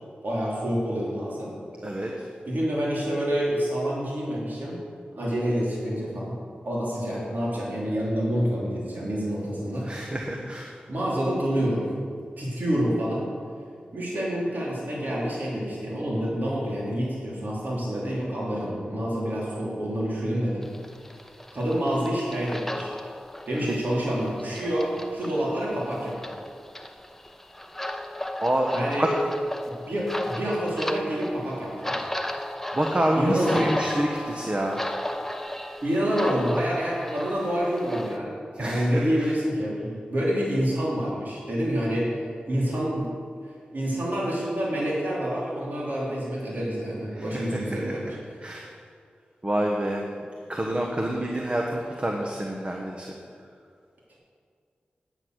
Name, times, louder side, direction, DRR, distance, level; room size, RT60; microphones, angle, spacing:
voice 1, 0.2-1.5 2.0-2.1 2.4-4.8 5.1-6.4 6.6-10.1 10.9-11.9 12.4-13.2 13.9-20.6 21.5-22.9 23.5-26.3 28.7-29.1 29.9-32.1 33.2-33.7 35.8-38.3 38.6-42.1 42.5-43.1 43.7-48.2 50.2-50.3, equal, 60° right, -6 dB, 3.2 m, -27 dB
voice 2, 9.8-10.7 23.7-23.8 28.4-28.7 29.0-29.1 32.7-34.8 38.6-39.0 47.2-47.9 48.4-48.7 49.4-50.0 50.5-53.2, right 1 dB, 35° right, 0 dB, 1.1 m, -27 dB
sound 1, 20.6-38.2, left 1 dB, 10° left, 0.8 m, -36 dB
9.9 x 8.1 x 6.1 m, 2.1 s
cardioid pair, 55°, 3 cm